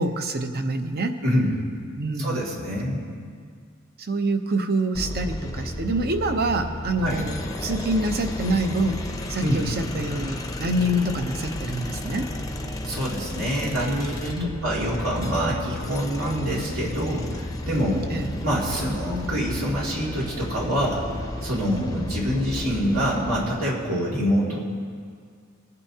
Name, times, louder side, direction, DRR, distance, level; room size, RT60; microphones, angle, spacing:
voice 1, 0.0-1.2 2.0-2.4 4.0-9.0 9.3-12.3 14.4-14.8 18.1-18.3, right 1 dB, 50° right, 7 dB, 0.8 m, -26 dB
voice 2, 1.2-1.5 2.2-3.1 7.0-7.2 9.4-9.6 12.8-18.1 18.4-21.0 21.4-24.6, equal, 80° right, -6 dB, 2.5 m, -26 dB
sound 1, 4.9-23.4, left 1 dB, 15° left, 0.7 m, -33 dB
20.5 x 11.0 x 2.8 m, 2.1 s
head